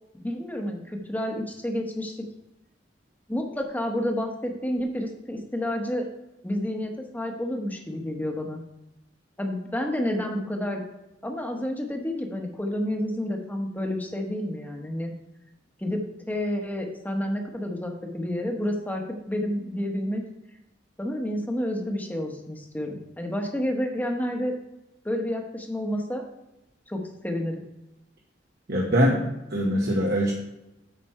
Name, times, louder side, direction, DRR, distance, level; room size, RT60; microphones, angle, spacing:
voice 1, 0.2-2.2 3.3-6.1 6.4-8.6 9.4-10.8 11.2-15.1 15.8-20.2 21.0-24.5 25.0-26.2 26.9-27.6, left 1 dB, 10° left, 2 dB, 1.2 m, -30 dB
voice 2, 28.7-30.3, equal, 60° right, -2 dB, 1.2 m, -23 dB
8.3 x 5.9 x 4.4 m, 0.93 s
head